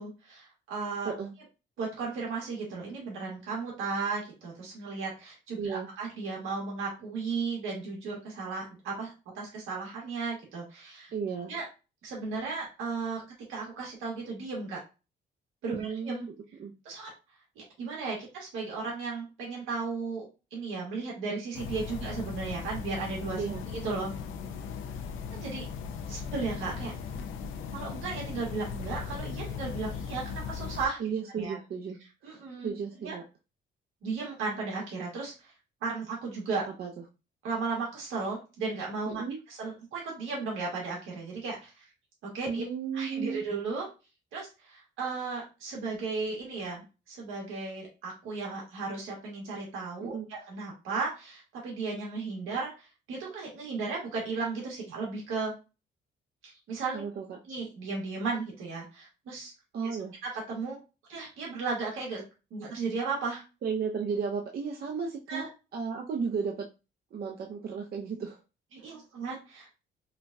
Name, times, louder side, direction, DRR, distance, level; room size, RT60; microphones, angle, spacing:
voice 1, 0.0-1.1 1.8-11.1 11.5-11.6 12.0-13.2 13.5-14.8 15.6-16.3 16.8-17.1 17.5-20.3 20.5-23.4 23.7-24.1 25.3-25.7 26.1-26.9 27.7-31.0 31.3-31.6 32.2-32.7 33.0-33.1 34.0-35.5 35.8-36.7 37.4-41.8 42.3-42.6 42.9-43.9 44.3-55.5 56.4-57.0 57.4-59.5 60.2-60.8 61.1-62.2 62.5-63.4 65.3-65.5 68.7-69.7, right 4 dB, 90° right, -3 dB, 1.6 m, -35 dB
voice 2, 5.6-5.9 11.1-11.5 15.7-16.3 16.6-16.7 23.4-23.7 31.0-33.2 36.8-36.9 39.1-39.4 42.4-43.4 50.0-50.3 56.9-57.4 59.7-60.1 63.6-66.7 67.1-68.4 68.9-69.0, right 6 dB, 55° right, 1 dB, 0.6 m, -34 dB
sound 1, 21.5-30.9, left 6 dB, 85° left, 0.6 m, -38 dB
5.0 x 2.3 x 2.6 m, 0.30 s
cardioid pair, 90°, 20 cm